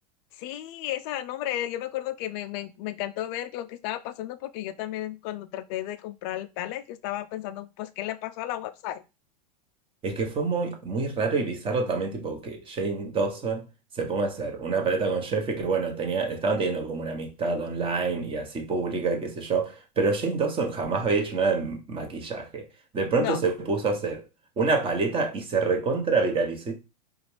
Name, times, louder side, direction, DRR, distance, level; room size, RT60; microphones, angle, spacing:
voice 1, 0.4-9.0 23.2-23.4, left 13 dB, 40° left, 0.4 m, -33 dB
voice 2, 10.0-13.7 13.9-22.6 22.9-24.2 24.6-26.7, right 4 dB, 25° right, 1.1 m, -27 dB
4.8 x 2.4 x 3.3 m
figure-of-eight pair, 95°, 21 cm